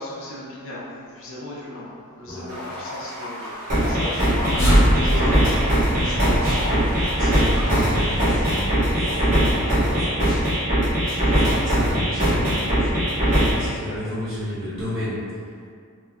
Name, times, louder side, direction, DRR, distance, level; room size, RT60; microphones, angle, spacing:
voice 1, 0.0-5.9, left 1 dB, 60° left, -6 dB, 0.6 m, -37 dB
voice 2, 2.2-2.6 4.1-4.2 4.8-10.6 11.0-15.5, left 1 dB, 55° right, -12 dB, 1.2 m, -32 dB
sound 1, 2.5-8.2, left 1 dB, 70° right, 0.7 m, -34 dB
sound 2, 3.7-13.7, equal, 35° right, 0.7 m, -21 dB
sound 3, 4.0-9.3, equal, 10° left, 0.8 m, -24 dB
3.0 x 2.2 x 2.4 m, 2.2 s
head